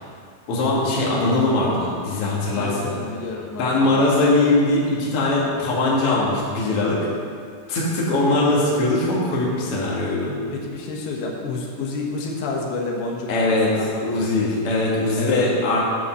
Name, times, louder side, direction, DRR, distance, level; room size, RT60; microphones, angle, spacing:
voice 1, 0.5-2.8 3.6-7.0 7.7-10.3 13.3-13.7 14.0-15.9, left 2 dB, 45° left, -5 dB, 2.0 m, -21 dB
voice 2, 2.6-4.1 10.5-14.4 15.2-15.5, left 3 dB, 85° left, 0 dB, 3.5 m, -29 dB
9.1 x 7.0 x 6.2 m, 2.2 s
omnidirectional pair, 5.0 m